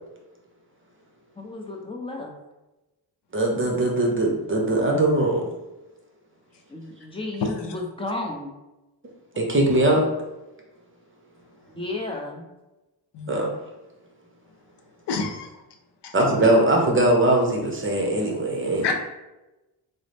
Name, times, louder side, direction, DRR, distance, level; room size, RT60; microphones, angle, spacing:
voice 1, 1.4-2.3 6.7-8.5 11.7-12.5, left 2 dB, 10° left, 0 dB, 0.6 m, -33 dB
voice 2, 3.3-5.5 9.4-10.0 13.3-13.5 16.1-18.9, right 1 dB, 25° right, 0 dB, 0.8 m, -21 dB
voice 3, 7.4-7.7 13.1-13.3 15.1-15.5 16.0-16.1 18.8-18.9, left 4 dB, 65° left, 5 dB, 0.6 m, -27 dB
3.7 x 2.1 x 3.3 m, 1.0 s
cardioid pair, 85°, 44 cm